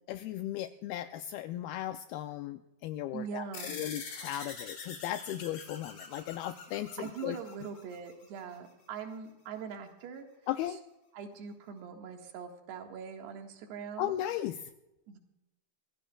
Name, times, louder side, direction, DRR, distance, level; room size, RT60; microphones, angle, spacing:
voice 1, 0.1-7.4 10.5-10.8 14.0-14.6, left 12 dB, 80° left, 9 dB, 2.2 m, -36 dB
voice 2, 3.1-3.8 7.0-10.3 11.1-14.2 15.1-15.2, right 6 dB, 80° right, 3 dB, 3.7 m, -42 dB
sound 1, 3.5-8.4, left 5 dB, 65° left, 4.8 m, -45 dB
26.0 x 15.0 x 2.3 m, 0.96 s
omnidirectional pair, 4.7 m